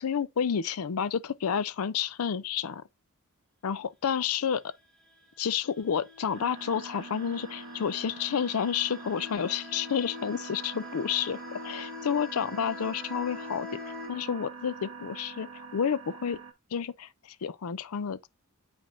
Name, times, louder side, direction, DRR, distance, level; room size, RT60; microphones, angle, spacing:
voice 1, 0.0-2.8 3.6-4.7 5.4-13.8 14.1-16.4 16.7-18.3, left 7 dB, 90° left, 0.5 m, -30 dB
sound 1, 5.1-14.1, left 5 dB, 5° left, 1.4 m, -46 dB
sound 2, 6.3-16.5, right 4 dB, 70° right, 1.5 m, -44 dB
8.9 x 5.1 x 2.6 m
head